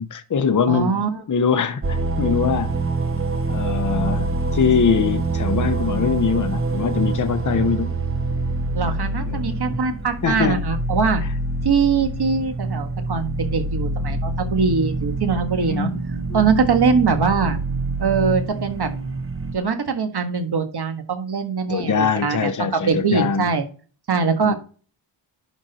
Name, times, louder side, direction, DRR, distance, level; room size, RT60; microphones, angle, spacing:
voice 1, 0.0-1.0 1.3-2.7 3.5-7.9 9.3-9.6 10.2-10.6 15.7-16.0 16.3-16.4 21.7-23.5 24.4-24.5, left 6 dB, 40° left, 0.8 m, -22 dB
voice 2, 0.7-1.2 8.7-11.2 11.6-15.9 16.3-17.6 18.0-18.9 19.5-23.6 24.1-24.5, right 5 dB, 50° right, 1.6 m, -22 dB
sound 1, 1.8-19.5, right 2 dB, 25° right, 0.9 m, -25 dB
11.0 x 4.4 x 4.2 m
wide cardioid pair, 165°, 49 cm